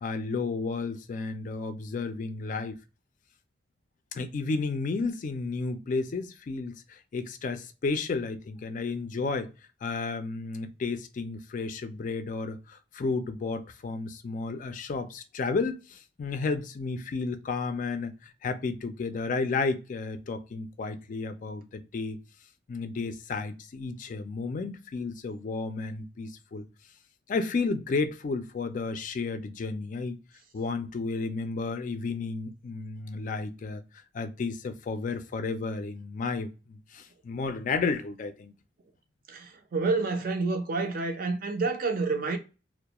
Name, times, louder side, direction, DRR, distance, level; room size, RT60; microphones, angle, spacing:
voice 1, 0.0-2.8 4.1-9.5 9.8-22.2 22.7-26.7 27.3-30.2 30.5-33.8 34.1-38.5, left 4 dB, 45° left, 0.3 m, -32 dB
voice 2, 39.3-42.4, right 3 dB, 50° right, 0.5 m, -28 dB
2.3 x 2.1 x 2.8 m
head